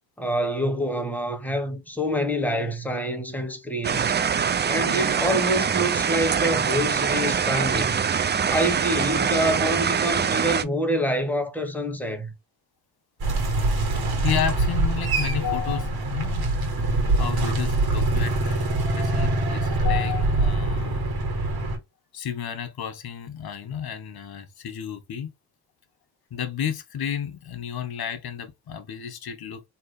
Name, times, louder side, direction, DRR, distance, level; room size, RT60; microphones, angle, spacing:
voice 1, 0.2-4.2 4.7-8.0 8.5-12.3, equal, 5° left, 1.3 m, -26 dB
sound 1, 3.8-10.6, right 7 dB, 25° right, 0.4 m, -24 dB
voice 2, 4.6-5.0 14.0-16.5 17.2-18.6 19.0-21.1 22.1-25.3 26.3-29.6, left 8 dB, 50° left, 1.0 m, -32 dB
sound 2, 13.2-21.8, right 2 dB, 50° right, 1.5 m, -24 dB
3.2 x 2.9 x 2.3 m
supercardioid pair, 55°, 47 cm